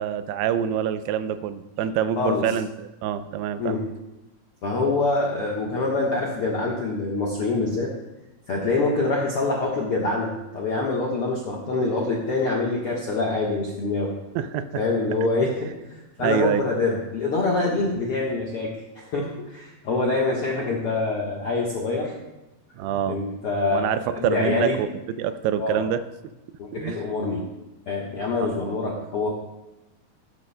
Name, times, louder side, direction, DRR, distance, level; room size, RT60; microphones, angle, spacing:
voice 1, 0.0-3.8 14.4-14.7 16.2-16.6 22.8-23.2 23.7-24.9 25.2-26.0 26.7-27.0 28.7-28.8, right 9 dB, 85° right, 11 dB, 2.7 m, -26 dB
voice 2, 3.6-3.9 4.6-7.9 8.5-14.1 14.7-22.1 23.1-23.8 24.1-24.8 25.6-25.9 26.6-27.5 27.9-29.3, left 3 dB, 70° left, -4 dB, 1.3 m, -25 dB
17.0 x 9.8 x 2.2 m, 0.99 s
omnidirectional pair, 4.6 m